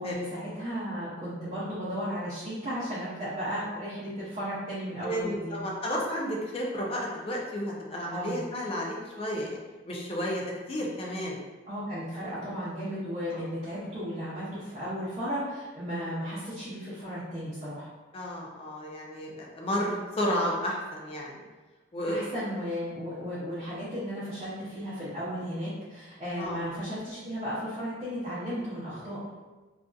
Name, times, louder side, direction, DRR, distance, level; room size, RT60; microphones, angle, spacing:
voice 1, 0.0-5.6 8.1-8.4 11.7-17.9 22.1-29.2, equal, 35° right, -12 dB, 0.7 m, -35 dB
voice 2, 5.0-9.6 9.9-11.4 12.4-12.5 13.3-13.5 18.1-21.4 21.9-22.2 26.4-26.7, equal, 30° left, -2 dB, 0.4 m, -32 dB
2.6 x 2.4 x 2.3 m, 1.2 s
head